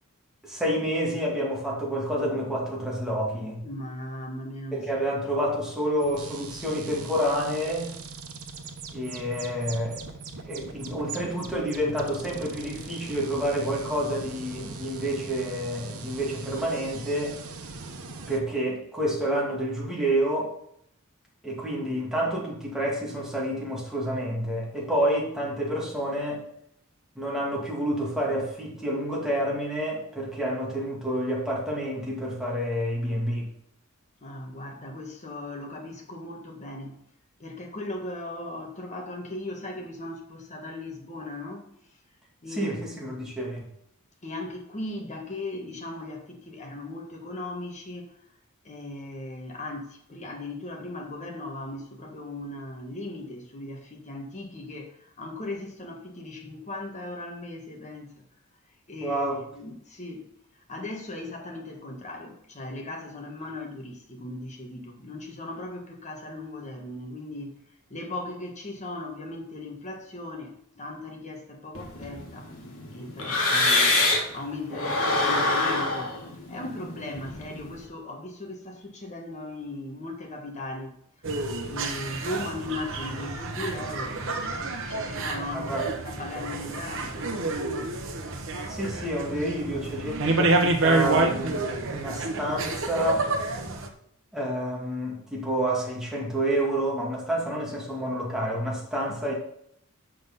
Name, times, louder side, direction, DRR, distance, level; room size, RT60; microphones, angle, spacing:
voice 1, 0.4-3.6 4.7-7.9 8.9-10.0 10.5-17.4 18.3-20.5 21.4-26.4 27.2-33.5 42.5-43.7 59.0-59.4 74.7-74.8 85.5-85.9 88.7-91.6 91.9-93.3 94.3-99.3, right 1 dB, ahead, -4 dB, 2.2 m, -29 dB
voice 2, 3.6-5.1 34.2-37.0 37.4-41.8 42.4-43.2 44.2-48.1 48.6-58.1 58.9-60.2 60.6-67.6 67.9-72.5 72.9-76.1 76.5-80.9 81.7-88.0, left 2 dB, 35° left, 2 dB, 1.5 m, -38 dB
sound 1, 6.0-18.4, right 4 dB, 90° right, 1.1 m, -41 dB
sound 2, 71.7-74.4 74.7-77.8, left 2 dB, 65° left, 1.6 m, -26 dB
sound 3, 81.2-93.9, right 2 dB, 60° right, 1.0 m, -28 dB
6.6 x 6.1 x 5.5 m, 0.71 s
head